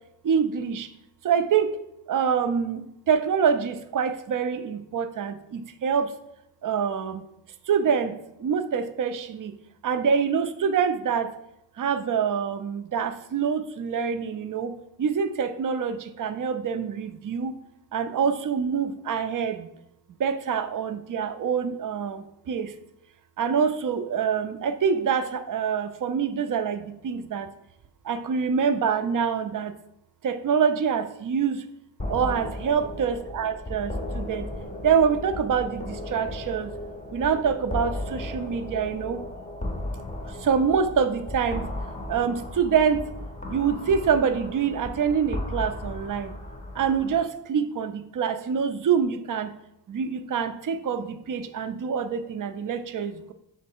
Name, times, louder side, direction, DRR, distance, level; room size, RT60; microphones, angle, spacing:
voice 1, 0.2-0.9 1.2-1.8 2.1-6.1 6.6-7.2 7.7-9.5 9.8-11.3 11.8-17.5 17.9-19.7 20.2-22.7 23.4-27.5 28.1-29.7 30.2-31.6 32.1-34.5 34.8-36.7 37.1-39.3 40.4-41.7 42.1-43.0 43.5-46.3 46.8-49.5 49.9-53.3, right 6 dB, 45° right, 10 dB, 0.4 m, -25 dB
sound 1, 32.0-47.2, left 1 dB, 15° left, 0.6 m, -35 dB
3.3 x 3.1 x 4.4 m, 0.83 s
cardioid pair, 55°, 46 cm